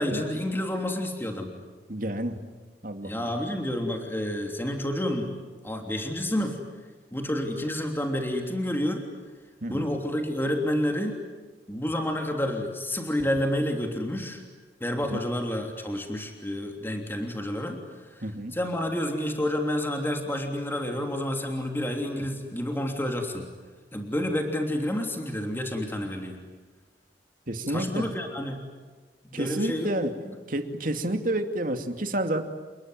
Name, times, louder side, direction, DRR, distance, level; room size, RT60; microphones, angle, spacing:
voice 1, 0.0-1.5 3.0-5.3 5.6-6.6 7.1-9.0 9.7-11.2 11.7-14.4 14.8-17.8 18.0-18.2 18.5-23.5 23.9-26.4 27.7-28.6 29.2-29.9, left 1 dB, 15° left, 3 dB, 3.2 m, -29 dB
voice 2, 1.9-2.4 2.8-3.3 9.6-9.9 15.1-15.2 18.2-18.5 27.5-28.0 29.3-30.1 30.5-32.4, right 1 dB, 50° right, 6 dB, 2.6 m, -29 dB
29.0 x 21.5 x 9.4 m, 1.3 s
head